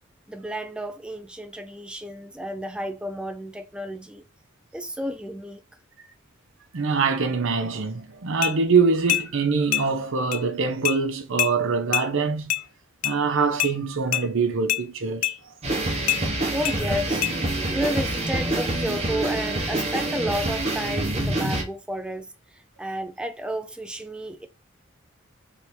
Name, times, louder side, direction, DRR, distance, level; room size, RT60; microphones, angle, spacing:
voice 1, 0.3-4.2 4.7-5.6 16.5-17.3 17.7-24.5, equal, 5° right, 0.3 m, -32 dB
voice 2, 6.7-12.5 13.0-15.4 15.7-15.8, right 4 dB, 65° right, 0.7 m, -24 dB
sound 1, 8.4-8.6 9.1-9.3 9.7-9.9 10.3-10.4 10.8-11.0 11.4-11.5 11.9-12.1 12.5-12.6 13.0-13.2 13.6-13.7 14.1-14.3 14.7-14.8 15.2-15.4 16.1-16.2 16.6-16.8 17.2-17.3, left 14 dB, 85° left, 0.4 m, -24 dB
sound 2, 15.6-21.6, right 1 dB, 30° right, 1.1 m, -26 dB
3.3 x 2.9 x 4.2 m
head